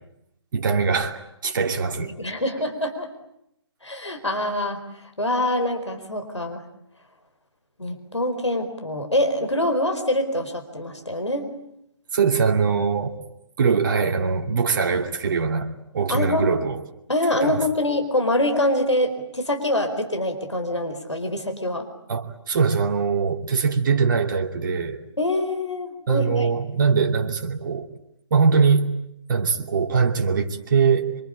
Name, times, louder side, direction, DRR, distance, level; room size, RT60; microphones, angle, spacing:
voice 1, 0.5-2.1 12.1-13.2 13.6-16.8 17.3-17.6 22.1-25.0 26.1-27.9 28.3-28.9 29.3-31.2, right 5 dB, 45° right, 2.7 m, -22 dB
voice 2, 2.0-3.1 3.8-6.6 7.8-11.5 16.1-16.5 17.1-21.9 25.2-26.5, left 1 dB, 80° left, 4.5 m, -25 dB
26.5 x 25.5 x 8.7 m
figure-of-eight pair, 135°, 15 cm